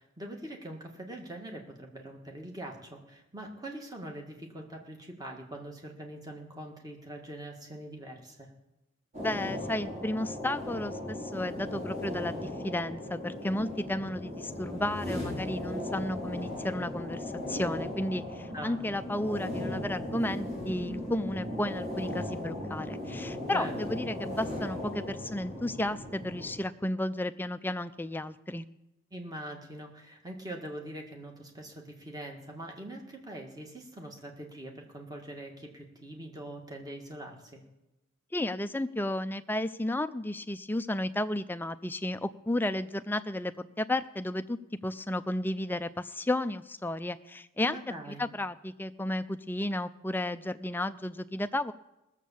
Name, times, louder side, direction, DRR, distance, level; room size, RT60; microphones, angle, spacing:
voice 1, 0.0-8.5 18.5-18.8 23.5-23.7 29.1-37.6 47.7-48.2, right 1 dB, 20° right, 1 dB, 1.8 m, -43 dB
sound 1, 9.1-26.5, left 1 dB, 40° right, 4.1 m, -37 dB
voice 2, 9.2-28.6 38.3-47.8 48.2-51.7, left 1 dB, 10° left, 11 dB, 0.4 m, -33 dB
18.5 x 7.4 x 7.0 m, 0.94 s
head